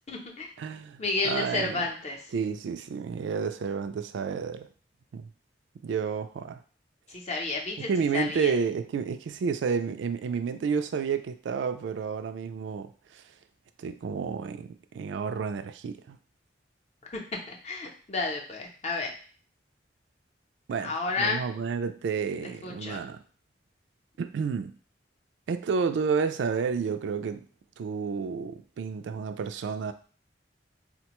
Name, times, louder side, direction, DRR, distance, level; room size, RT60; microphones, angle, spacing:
voice 1, 0.1-0.5 1.0-2.3 7.1-8.5 17.0-17.2 17.5-19.1 20.8-21.4 22.4-23.0, left 3 dB, 35° left, 1 dB, 0.6 m, -31 dB
voice 2, 0.6-1.8 2.3-4.7 5.1-5.3 5.8-6.6 7.8-13.2 13.8-16.2 20.7-23.2 24.2-24.7 25.5-27.5 27.8-29.9, right 5 dB, 80° right, 10 dB, 0.3 m, -30 dB
4.1 x 2.1 x 2.9 m, 0.43 s
head